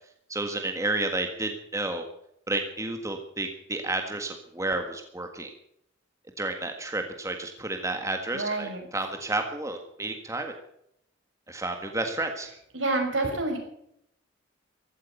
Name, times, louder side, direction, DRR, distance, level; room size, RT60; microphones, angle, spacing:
voice 1, 0.3-2.0 2.5-5.5 6.4-10.5 11.5-12.5, right 2 dB, 15° right, 5 dB, 1.6 m, -31 dB
voice 2, 8.3-8.8 12.7-13.6, right 2 dB, 75° right, 3 dB, 5.8 m, -28 dB
15.5 x 13.0 x 6.9 m, 0.73 s
head